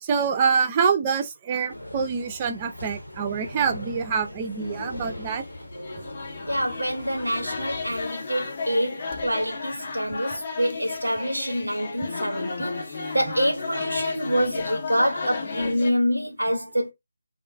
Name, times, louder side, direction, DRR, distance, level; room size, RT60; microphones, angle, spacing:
voice 1, 0.0-5.4, right 6 dB, 20° right, 0.3 m, -25 dB
sound 1, 1.7-8.1, left 1 dB, 80° left, 0.9 m, -39 dB
sound 2, 4.7-15.9, left 4 dB, 40° left, 0.5 m, -34 dB
voice 2, 6.5-16.9, equal, 85° right, 0.5 m, -26 dB
2.4 x 2.2 x 2.3 m
figure-of-eight pair, 155°, 0 cm